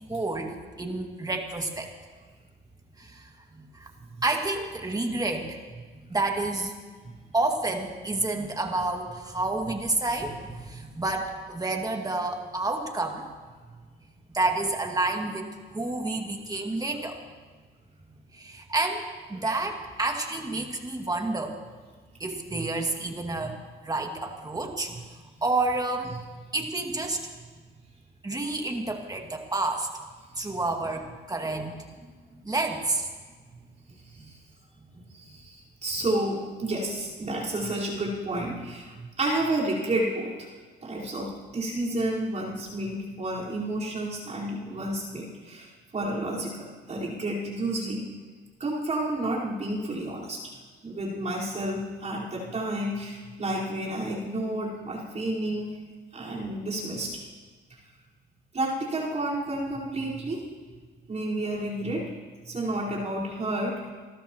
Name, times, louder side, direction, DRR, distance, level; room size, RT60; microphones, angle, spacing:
voice 1, 0.0-1.9 3.0-3.9 4.2-5.6 6.1-6.7 7.3-13.3 14.3-17.2 18.3-19.0 19.3-21.6 22.2-23.6 23.8-24.9 25.4-26.1 26.5-27.2 28.2-29.9 30.4-31.8 32.4-33.1, right 2 dB, 20° right, 2 dB, 2.3 m, -29 dB
voice 2, 34.0-34.4 35.0-40.5 40.8-48.1 48.6-50.4 50.8-55.8 56.1-57.2 58.5-60.4 61.1-62.1 62.4-63.8, right 1 dB, 35° right, -6 dB, 4.8 m, -31 dB
28.5 x 13.0 x 3.1 m, 1.5 s
cardioid pair, 90°, 20 cm